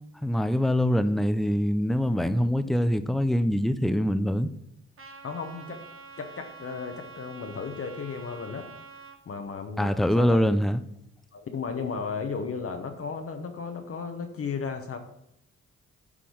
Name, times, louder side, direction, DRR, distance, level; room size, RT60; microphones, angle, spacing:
voice 1, 0.2-4.5 9.8-10.8, equal, ahead, 0.5 m, -24 dB
Trumpet, 5.0-9.2, right 5 dB, 45° right, 1.2 m, -46 dB
voice 2, 5.2-5.8 6.2-8.7 9.3-10.4 11.3-15.0, left 5 dB, 50° left, 1.0 m, -34 dB
8.4 x 3.8 x 6.4 m
cardioid pair, 75°, 30 cm